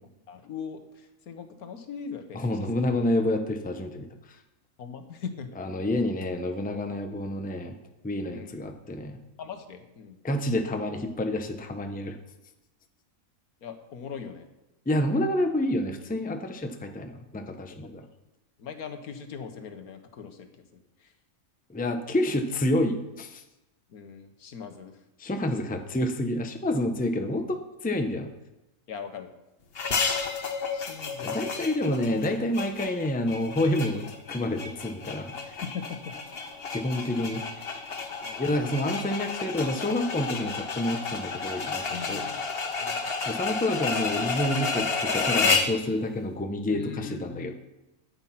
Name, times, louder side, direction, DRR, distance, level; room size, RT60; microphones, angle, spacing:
voice 1, 0.3-2.7 4.8-5.5 8.3-8.6 9.4-10.2 13.6-14.5 18.6-21.1 23.9-25.0 28.9-29.3 30.7-31.4 35.6-36.4 38.2-38.8 41.9-42.4 42.8-43.0 46.7-47.5, left 6 dB, 75° left, 7 dB, 1.6 m, -40 dB
voice 2, 2.3-4.1 5.6-7.8 8.0-9.2 10.2-12.2 14.9-18.0 21.7-23.4 25.2-27.4 27.8-28.3 31.2-35.5 36.7-37.4 38.4-42.2 43.3-47.5, left 1 dB, 5° left, 5 dB, 0.7 m, -28 dB
sound 1, 29.8-45.8, left 4 dB, 45° left, 1.1 m, -31 dB
13.5 x 8.9 x 5.8 m, 0.97 s
omnidirectional pair, 1.6 m